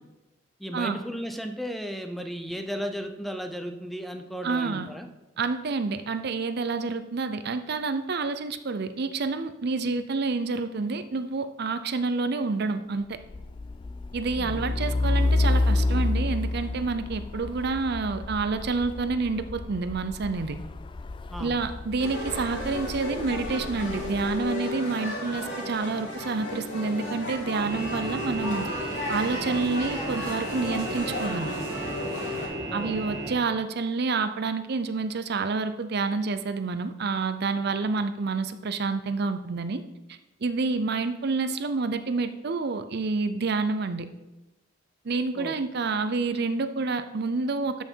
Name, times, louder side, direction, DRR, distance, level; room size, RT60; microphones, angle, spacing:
voice 1, 0.6-5.1 14.4-14.6 21.3-21.6 32.7-32.9 45.3-45.5, equal, ahead, 6 dB, 0.7 m, -35 dB
voice 2, 4.4-4.9 5.4-13.2 14.1-20.6 21.4-28.7 29.1-31.5 32.7-39.8 40.1-44.1 45.0-47.8, right 4 dB, 60° right, 10 dB, 0.6 m, -28 dB
Truck, 13.1-24.6, left 2 dB, 25° left, 0.3 m, -30 dB
sound 1, 22.0-32.5, left 1 dB, 70° left, 3.0 m, -34 dB
sound 2, 27.6-33.3, right 2 dB, 40° right, 2.3 m, -35 dB
12.5 x 5.6 x 4.6 m, 1.0 s
head